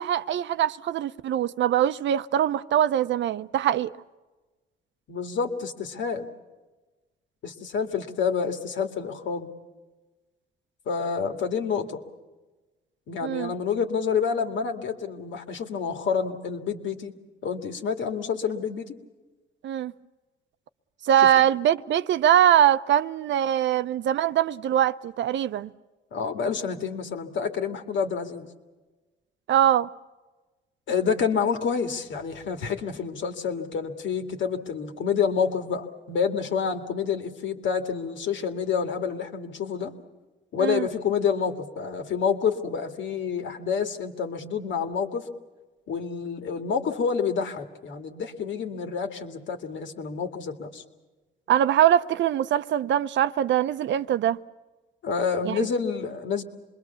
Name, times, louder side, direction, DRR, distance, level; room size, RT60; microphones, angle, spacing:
voice 1, 0.0-3.9 13.2-13.5 19.6-19.9 21.0-25.7 29.5-29.9 40.6-40.9 51.5-54.4 55.5-55.6, right 10 dB, 70° right, 0.7 m, -22 dB
voice 2, 5.1-6.3 7.4-9.5 10.9-12.0 13.1-17.1 17.4-19.0 21.2-21.3 26.1-28.5 30.9-39.9 40.5-45.3 45.9-50.8 55.0-56.4, left 6 dB, 70° left, 2.3 m, -28 dB
26.5 x 21.5 x 7.1 m
cardioid pair, 90°, 20 cm